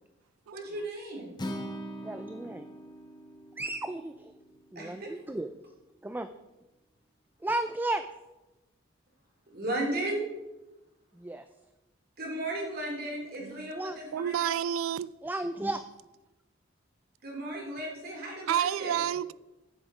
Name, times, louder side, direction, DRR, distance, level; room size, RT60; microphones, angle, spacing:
voice 1, 0.5-1.3 4.7-5.1 9.5-10.3 12.2-14.6 17.2-19.0, right 1 dB, 50° right, 2.8 m, -35 dB
Acoustic guitar, 1.4-5.6, equal, 20° left, 0.9 m, -42 dB
voice 2, 2.0-2.6 3.6-4.3 4.7-5.5 6.0-6.3 7.4-8.0 11.2-11.4 13.7-14.0 15.2-15.8, right 2 dB, 10° right, 0.3 m, -33 dB
voice 3, 14.1-15.1 18.5-19.3, right 9 dB, 90° right, 0.3 m, -30 dB
10.0 x 7.2 x 5.0 m
head